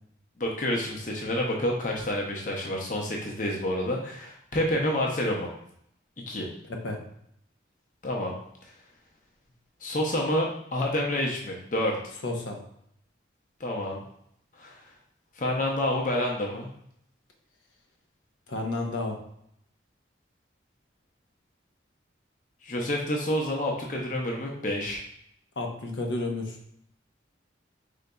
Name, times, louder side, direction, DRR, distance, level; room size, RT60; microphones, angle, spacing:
voice 1, 0.4-5.5 6.3-6.5 8.0-8.3 9.8-12.0 13.6-14.0 14.5-14.9 15.3-16.7 22.6-25.0, left 1 dB, 40° left, 0 dB, 0.6 m, -28 dB
voice 2, 6.7-7.0 12.2-12.6 18.5-19.2 25.6-26.6, left 2 dB, 75° left, 2 dB, 0.8 m, -31 dB
5.1 x 3.9 x 2.2 m, 0.70 s
head